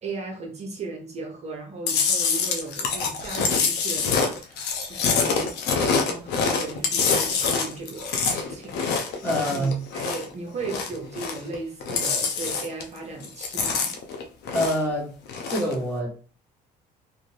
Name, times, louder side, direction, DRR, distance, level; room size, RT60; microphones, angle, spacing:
voice 1, 0.0-14.0, right 3 dB, 40° right, 0.7 m, -37 dB
Chewing mastication, 1.9-10.3 10.6-11.6 11.8-13.0 13.2-14.9 15.3-15.7, left 5 dB, 80° left, 0.6 m, -25 dB
voice 2, 9.2-9.7 14.5-15.1 15.5-16.1, equal, 10° left, 1.3 m, -25 dB
2.6 x 2.5 x 3.1 m
cardioid pair, 110°, 17 cm